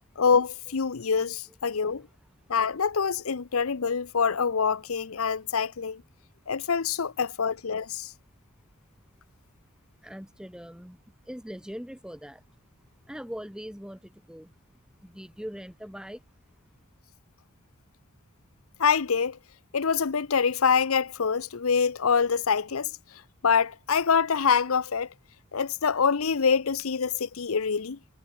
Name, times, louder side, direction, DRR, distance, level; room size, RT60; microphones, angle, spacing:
voice 1, 0.2-2.1 2.5-6.0 6.5-8.1 18.8-19.4 19.7-22.9 23.4-25.1 25.5-28.0, left 6 dB, 85° left, 0.7 m, -25 dB
voice 2, 10.0-12.4 13.1-14.5 15.0-16.2, equal, 5° right, 2.3 m, -41 dB
head